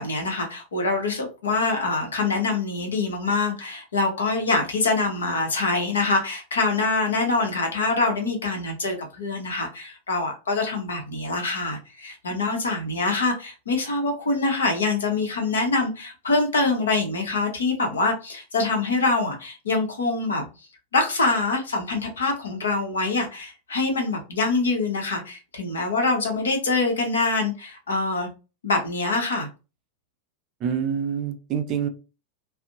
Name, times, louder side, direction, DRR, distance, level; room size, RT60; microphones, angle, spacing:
voice 1, 0.0-20.5 20.9-28.3 28.6-29.5, left 3 dB, 70° left, 0.8 m, -25 dB
voice 2, 30.6-31.9, right 8 dB, 35° right, 0.4 m, -26 dB
2.5 x 2.0 x 2.6 m
figure-of-eight pair, 90°, 0 cm